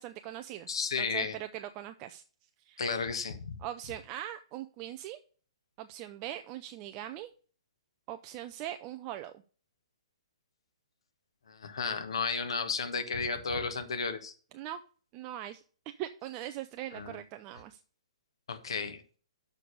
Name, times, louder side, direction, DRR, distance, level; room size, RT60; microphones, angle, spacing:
voice 1, 0.0-0.7 1.0-2.2 2.7-2.8 3.6-5.2 5.8-7.3 8.1-9.4 14.5-14.8 15.1-17.8, right 12 dB, 25° right, 8 dB, 0.4 m, -41 dB
voice 2, 0.7-1.3 2.8-3.6 11.5-14.3 16.9-17.2 18.5-19.0, left 5 dB, 60° left, 9 dB, 1.2 m, -33 dB
6.8 x 5.2 x 6.4 m, 0.41 s
figure-of-eight pair, 120°, 3 cm